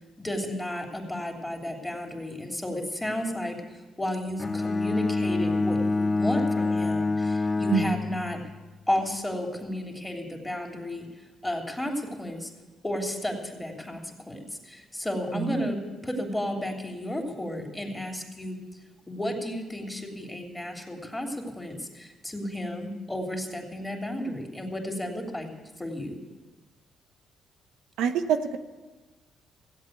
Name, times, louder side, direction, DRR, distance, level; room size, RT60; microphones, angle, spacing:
voice 1, 0.2-3.6 4.0-8.4 8.9-11.1 11.4-12.5 12.8-18.6 19.1-25.5 25.8-26.2, left 1 dB, 10° left, 1 dB, 3.1 m, -33 dB
Bowed string instrument, 4.4-8.6, left 3 dB, 25° left, 0.6 m, -26 dB
voice 2, 15.3-15.7 28.0-28.6, right 7 dB, 90° right, 7 dB, 0.9 m, -26 dB
16.0 x 8.3 x 9.3 m, 1.2 s
cardioid pair, 90°, 0 cm